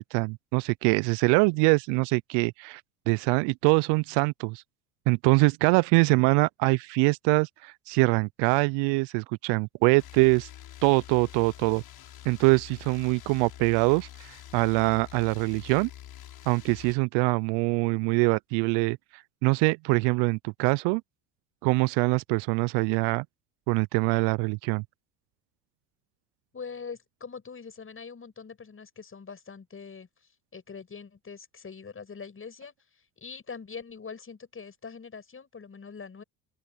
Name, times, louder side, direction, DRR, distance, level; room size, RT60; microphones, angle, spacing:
voice 1, 0.0-2.8 3.1-4.6 5.1-10.5 10.8-11.8 12.2-15.9 16.5-19.0 19.4-21.0 21.6-23.2 23.7-24.8, right 29 dB, 65° right, 0.7 m, -24 dB
sound 1, 10.0-16.9, left 12 dB, 55° left, 6.0 m, -46 dB
voice 2, 26.5-36.2, left 5 dB, 30° left, 7.5 m, -43 dB
open air
hypercardioid pair, 75°, 45 cm